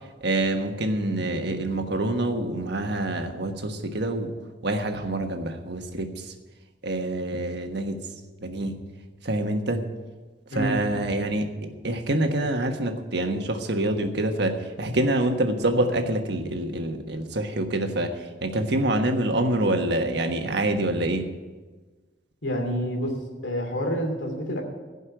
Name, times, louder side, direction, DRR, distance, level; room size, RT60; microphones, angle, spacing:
voice 1, 0.2-4.3 4.6-6.3 6.8-8.0 8.4-8.8 9.2-9.8 10.5-11.5 11.8-21.3, right 1 dB, 65° right, 5 dB, 1.4 m, -26 dB
voice 2, 22.4-23.1 23.4-24.6, equal, 80° left, 3 dB, 2.5 m, -27 dB
16.0 x 5.5 x 9.0 m, 1.3 s
head